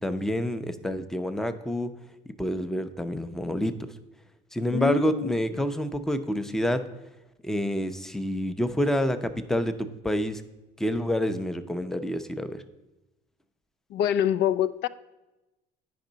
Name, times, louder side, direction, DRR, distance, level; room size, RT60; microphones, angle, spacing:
voice 1, 0.0-1.9 2.4-3.8 4.5-6.8 7.4-10.4 10.8-12.6, equal, ahead, 9 dB, 0.5 m, -28 dB
voice 2, 4.7-5.3 13.9-14.9, left 10 dB, 65° left, 15 dB, 0.4 m, -25 dB
9.3 x 5.4 x 3.9 m, 1.0 s
supercardioid pair, 90°, 19 cm